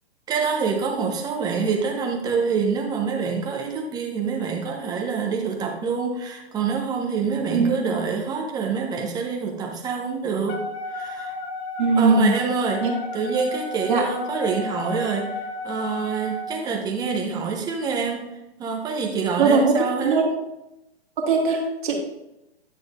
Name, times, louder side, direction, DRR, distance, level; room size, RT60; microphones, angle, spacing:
voice 1, 0.3-10.6 10.9-11.3 12.0-12.9 13.1-18.3 18.6-20.3 21.5-21.6, right 5 dB, 10° right, 2 dB, 0.8 m, -26 dB
voice 2, 7.5-8.0 11.8-12.3 12.8-12.9 13.9-14.1 19.4-19.8 20.0-20.3 21.3-22.0, right 4 dB, 50° right, 0 dB, 2.0 m, -20 dB
Wind instrument woodwind instrument, 10.5-16.5, left 2 dB, 20° left, 0.6 m, -33 dB
10.0 x 6.2 x 2.5 m, 0.91 s
hypercardioid pair, 135°, 32 cm